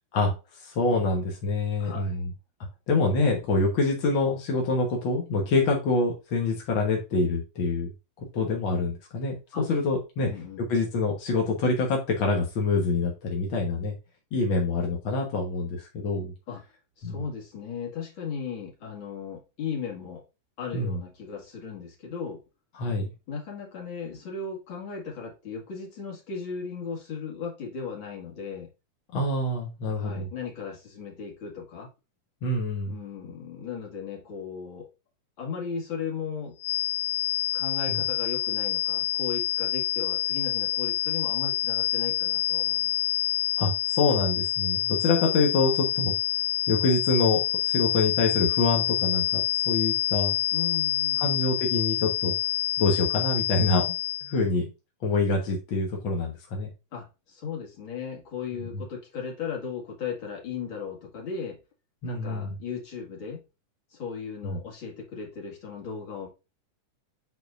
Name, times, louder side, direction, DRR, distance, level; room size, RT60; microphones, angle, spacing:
voice 1, 0.1-2.3 2.9-7.9 8.2-10.3 10.7-13.9 14.3-16.3 17.0-17.2 20.7-21.0 22.8-23.1 29.1-30.3 32.4-32.9 37.9-38.0 43.6-46.1 46.7-50.4 51.2-52.3 52.8-53.8 54.2-54.7 55.0-56.7 58.7-58.8 62.0-62.5 64.4-64.6, left 3 dB, 60° left, 1.3 m, -26 dB
voice 2, 1.8-2.2 9.5-9.7 10.2-10.7 16.5-16.6 17.0-20.2 20.6-22.4 23.3-28.7 30.0-31.9 32.8-34.9 35.4-36.6 37.5-42.9 50.5-51.6 56.9-61.6 62.1-63.4 63.9-66.3, left 6 dB, 40° left, 2.4 m, -36 dB
sound 1, 36.6-54.4, left 14 dB, 80° left, 2.1 m, -27 dB
9.5 x 4.2 x 2.5 m
omnidirectional pair, 3.8 m